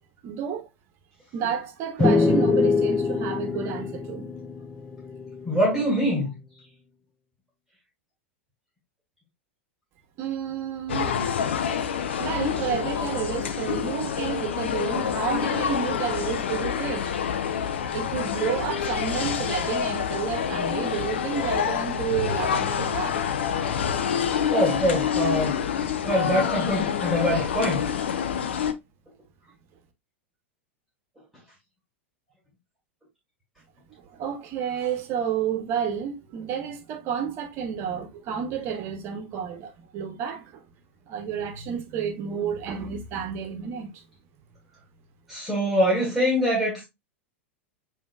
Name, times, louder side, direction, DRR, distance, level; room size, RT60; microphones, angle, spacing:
voice 1, 0.2-0.7 1.3-4.3 10.2-11.1 12.2-17.1 17.9-23.2 25.9-26.2 34.0-40.6 41.1-44.0, right 8 dB, 40° right, 1.0 m, -30 dB
sound 1, 2.0-5.6, left 3 dB, 15° left, 0.5 m, -24 dB
voice 2, 5.5-6.3 24.5-25.5 26.0-27.9 45.3-46.8, equal, 5° right, 2.1 m, -24 dB
sound 2, 10.9-28.7, left 8 dB, 65° left, 0.5 m, -27 dB
7.2 x 2.8 x 2.4 m
figure-of-eight pair, 90°, 7 cm